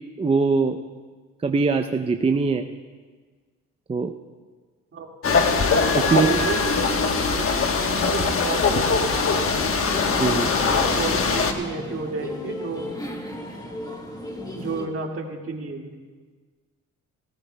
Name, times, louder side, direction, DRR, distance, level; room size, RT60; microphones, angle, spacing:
voice 1, 0.2-0.8 1.4-2.7 3.9-4.1 5.9-6.3 10.2-10.5, right 4 dB, 20° right, 5 dB, 0.5 m, -21 dB
sound 1, 5.2-11.5, left 4 dB, 45° left, 1.2 m, -22 dB
voice 2, 6.1-9.9 10.7-12.9 14.5-16.0, right 4 dB, 45° right, 1 dB, 2.0 m, -32 dB
sound 2, 9.3-14.9, left 1 dB, 15° left, 1.6 m, -35 dB
18.0 x 16.5 x 2.2 m, 1.4 s
cardioid pair, 90°, 30 cm